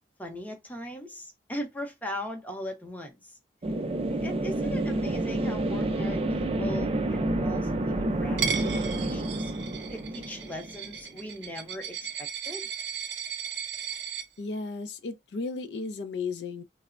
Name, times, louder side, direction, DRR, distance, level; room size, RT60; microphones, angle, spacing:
voice 1, 0.2-3.4 4.1-9.5 9.9-12.7, equal, 10° left, 0.6 m, -39 dB
sound 1, 3.6-11.2, right 1 dB, 35° right, 0.4 m, -29 dB
Coin (dropping), 8.4-14.2, right 7 dB, 90° right, 0.6 m, -35 dB
voice 2, 14.4-16.6, left 4 dB, 70° left, 0.4 m, -34 dB
3.2 x 2.0 x 2.4 m
head